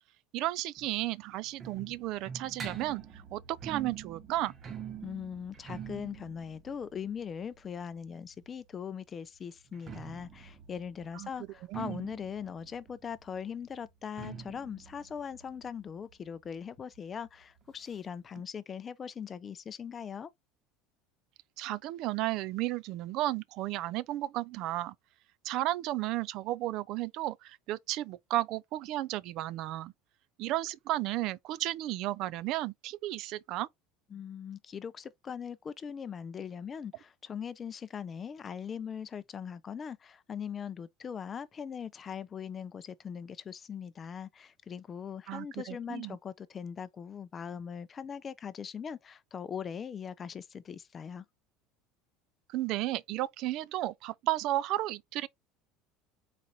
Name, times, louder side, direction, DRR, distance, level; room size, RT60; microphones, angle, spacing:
voice 1, 0.3-4.5 11.1-11.3 11.7-12.1 21.6-24.9 25.4-29.9 30.4-33.7 45.3-46.2 52.5-55.3, right 15 dB, 60° right, 0.4 m, -33 dB
sound 1, 0.8-8.5 9.6-17.0 17.2-17.3 17.6-17.7 18.4-18.5, right 7 dB, 35° right, 1.1 m, -46 dB
voice 2, 5.0-20.3 34.1-51.2, left 7 dB, 30° left, 0.4 m, -40 dB
4.1 x 2.6 x 4.2 m
supercardioid pair, 105°, 0 cm